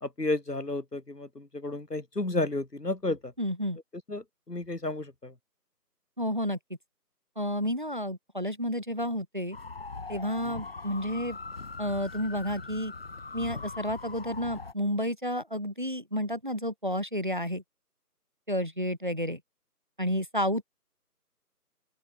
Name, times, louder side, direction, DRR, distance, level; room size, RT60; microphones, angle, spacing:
voice 1, 0.0-3.3 4.1-5.3 10.4-10.6, left 2 dB, 80° left, 3.2 m, -32 dB
voice 2, 3.4-3.8 6.2-6.6 7.4-9.6 10.1-11.4 11.8-12.9 13.3-17.6 18.5-19.4 20.0-20.6, equal, 30° right, 0.8 m, -31 dB
sound 1, 9.5-14.7, left 4 dB, 40° left, 7.4 m, -41 dB
open air
figure-of-eight pair, 160°, 47 cm